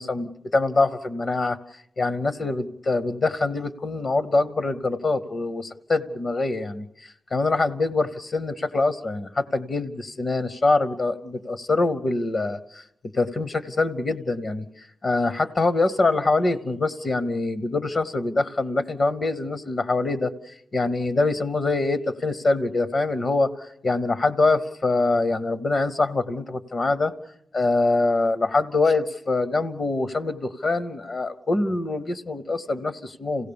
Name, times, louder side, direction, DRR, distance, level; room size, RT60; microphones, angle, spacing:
voice 1, 0.0-12.8 13.1-27.1 27.5-33.5, left 3 dB, 45° left, 12 dB, 0.7 m, -24 dB
27.5 x 16.5 x 6.9 m, 0.79 s
wide cardioid pair, 150°, 0 cm